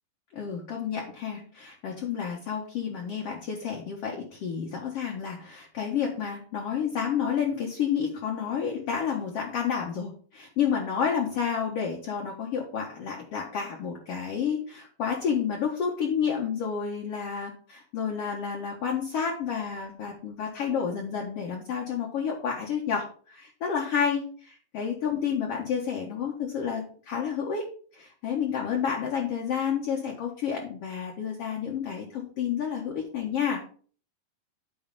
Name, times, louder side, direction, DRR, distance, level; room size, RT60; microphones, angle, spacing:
voice 1, 0.3-27.7 27.9-33.6, left 7 dB, 65° left, 0 dB, 1.6 m, -30 dB
9.5 x 4.4 x 5.3 m, 0.44 s
omnidirectional pair, 4.2 m